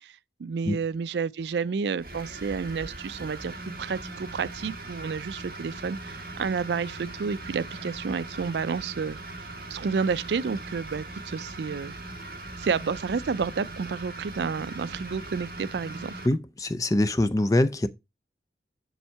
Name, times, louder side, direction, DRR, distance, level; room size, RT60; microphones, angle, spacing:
voice 1, 0.0-9.2 9.7-12.0 12.6-16.1, right 5 dB, 70° right, 0.4 m, -30 dB
sound 1, 2.0-16.3, right 2 dB, 50° right, 1.7 m, -40 dB
voice 2, 16.2-17.9, left 1 dB, 20° left, 0.5 m, -24 dB
7.2 x 6.3 x 4.6 m
head